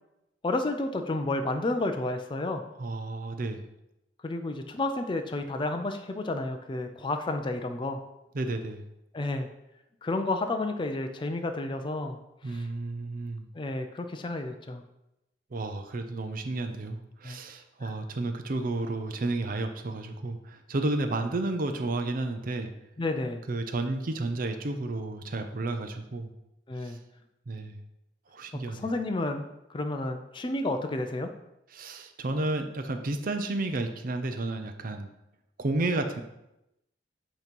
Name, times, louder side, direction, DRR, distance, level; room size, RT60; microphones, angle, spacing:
voice 1, 0.4-2.6 4.2-8.0 9.1-9.5 10.0-12.7 13.5-14.8 17.2-17.4 17.8-17.9 23.0-23.4 26.7-27.0 28.7-31.3, left 2 dB, 25° left, 5 dB, 0.4 m, -31 dB
voice 2, 2.8-3.6 8.3-8.8 12.4-13.5 15.5-22.7 23.5-26.3 26.8-27.0 27.5-27.8 28.3-28.9 31.7-35.1 35.6-36.2, right 2 dB, 50° right, 7 dB, 0.5 m, -32 dB
8.2 x 3.0 x 5.2 m, 0.89 s
head